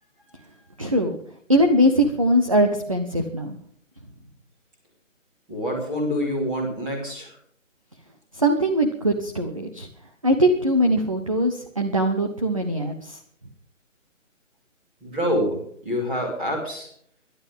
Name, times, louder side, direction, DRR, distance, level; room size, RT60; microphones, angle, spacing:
voice 1, 0.8-1.2 1.5-3.6 8.4-9.9 10.2-13.2, equal, 25° right, 4 dB, 1.0 m, -21 dB
voice 2, 5.5-7.3 15.0-15.6 15.8-16.9, equal, 5° right, -4 dB, 2.5 m, -26 dB
23.0 x 12.0 x 3.7 m, 0.63 s
hypercardioid pair, 180°, 39 cm